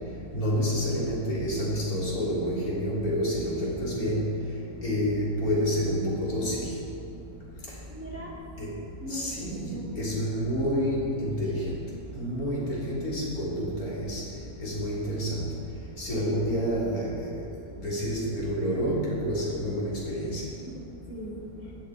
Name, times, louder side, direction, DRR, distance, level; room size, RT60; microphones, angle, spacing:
voice 1, 0.3-4.2 4.8-6.7 8.6-8.7 9.1-9.6 10.0-11.5 12.2-13.5 13.8-14.2 14.6-15.3 16.0-17.1 17.8-20.4, equal, 75° left, -6 dB, 4.0 m, -28 dB
voice 2, 7.9-8.3 9.0-9.9 20.7-20.8 21.1-21.7, equal, 10° right, -4 dB, 2.1 m, -40 dB
16.0 x 11.5 x 4.9 m, 2.6 s
omnidirectional pair, 1.6 m